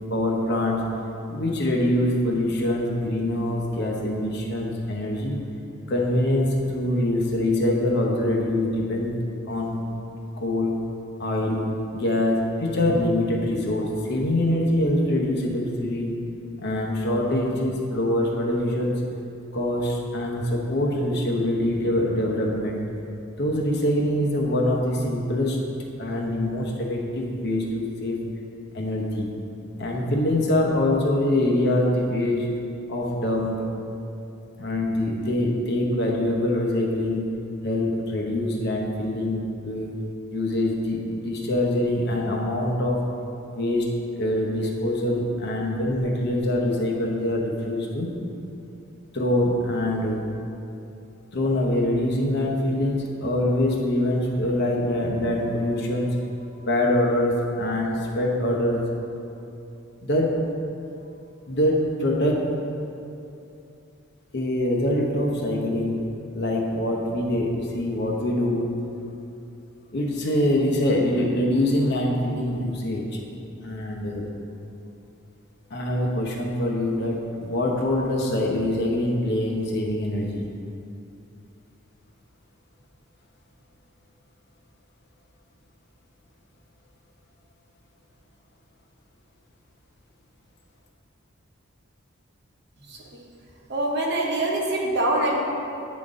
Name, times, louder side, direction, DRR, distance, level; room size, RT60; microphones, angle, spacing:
voice 1, 0.1-0.8 1.3-5.4 5.9-9.1 9.5-9.8 10.4-10.8 11.2-11.7 11.9-16.1 16.6-18.9 19.5-22.8 23.4-25.6 26.0-28.2 28.7-29.3 29.8-32.5 32.9-33.6 34.6-37.3 37.6-39.9 40.3-48.1 49.1-50.2 51.3-56.2 56.6-58.8 60.0-60.4 61.5-62.4 64.3-66.0 66.3-68.7 69.9-73.0 73.6-74.3 75.7-80.4, left 1 dB, 55° left, -1 dB, 0.9 m, -24 dB
voice 2, 93.7-95.4, right 1 dB, 55° right, -2 dB, 1.0 m, -24 dB
9.4 x 4.0 x 3.7 m, 2.7 s
head